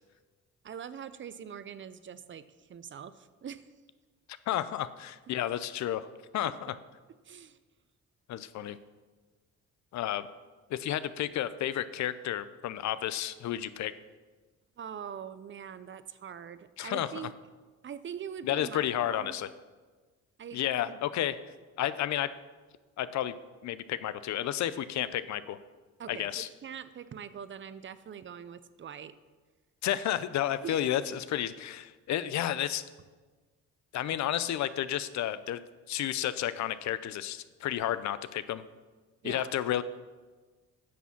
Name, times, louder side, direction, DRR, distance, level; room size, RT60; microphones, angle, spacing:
voice 1, 0.6-3.7 7.2-7.6 14.8-17.3 17.8-19.4 20.4-20.6 20.9-21.0 26.0-29.1 30.6-30.8 39.2-39.5, right 8 dB, 40° right, 14 dB, 0.5 m, -43 dB
voice 2, 4.5-6.1 6.3-6.7 8.3-8.8 9.9-10.3 10.7-13.9 16.8-17.3 18.4-19.5 20.5-21.4 21.8-22.4 23.0-23.4 23.6-25.6 26.1-26.5 29.8-32.8 33.9-38.6 39.2-39.8, left 12 dB, 65° left, 14 dB, 0.6 m, -31 dB
9.4 x 6.1 x 5.9 m, 1.3 s
cardioid pair, 90°, 30 cm